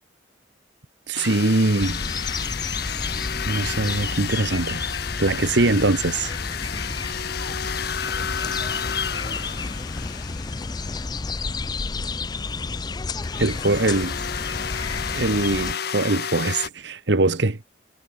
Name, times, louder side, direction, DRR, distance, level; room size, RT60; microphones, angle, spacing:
sound 1, 1.1-11.0 13.2-16.7, left 7 dB, 55° left, 1.1 m, -32 dB
voice 1, 1.1-2.0 3.5-4.8 5.2-6.4 13.4-14.2 15.1-17.5, right 2 dB, 60° right, 1.2 m, -22 dB
sound 2, 1.8-15.7, left 4 dB, 20° left, 0.4 m, -31 dB
voice 2, 6.2-6.8 8.1-10.6 17.1-17.4, right 1 dB, 20° right, 5.8 m, -51 dB
head